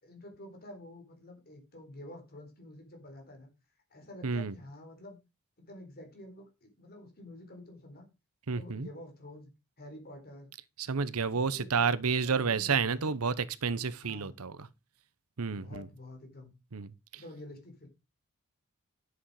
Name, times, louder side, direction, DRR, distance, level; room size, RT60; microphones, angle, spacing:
voice 1, 0.0-3.5 3.9-5.2 5.6-8.1 8.5-9.5 9.8-10.5 11.3-13.2 14.0-14.3 15.5-16.5 17.2-17.9, left 1 dB, 45° left, 4.0 m, -49 dB
voice 2, 4.2-4.5 8.5-8.9 10.8-14.7 15.4-15.9 16.7-17.2, right 5 dB, 80° right, 0.9 m, -30 dB
10.0 x 8.2 x 4.8 m
head